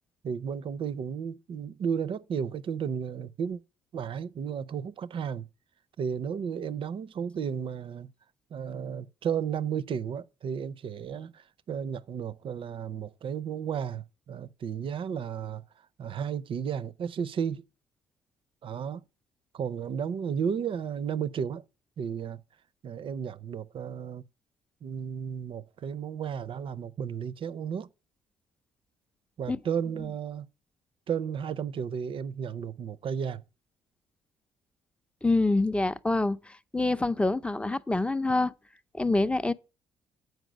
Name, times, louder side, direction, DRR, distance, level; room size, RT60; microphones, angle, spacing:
voice 1, 0.2-3.6 3.9-5.5 6.0-8.1 8.5-15.6 16.0-17.6 18.6-19.0 19.5-21.6 22.0-22.4 22.8-24.2 24.8-27.9 29.4-30.5 31.1-33.4, right 7 dB, 50° right, 0.5 m, -33 dB
voice 2, 35.2-38.5 38.9-39.5, left 2 dB, 10° left, 0.5 m, -26 dB
8.0 x 4.6 x 6.1 m
supercardioid pair, 75°, 11 cm